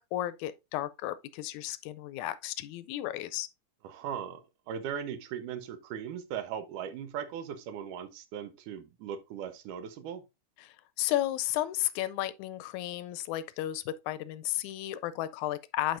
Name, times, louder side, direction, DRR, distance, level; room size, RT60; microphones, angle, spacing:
voice 1, 0.0-3.5 10.6-16.0, left 14 dB, 80° left, 1.8 m, -33 dB
voice 2, 3.8-4.4 4.7-10.2, right 8 dB, 90° right, 2.4 m, -38 dB
10.5 x 4.7 x 2.5 m
omnidirectional pair, 3.5 m